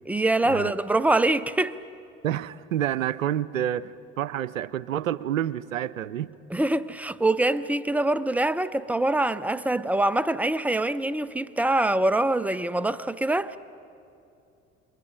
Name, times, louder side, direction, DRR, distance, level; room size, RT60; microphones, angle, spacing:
voice 1, 0.1-1.8 6.5-13.6, right 2 dB, 5° right, 0.6 m, -24 dB
voice 2, 2.2-6.3, right 11 dB, 85° right, 0.5 m, -28 dB
28.5 x 23.0 x 5.3 m
figure-of-eight pair, 55°, 39 cm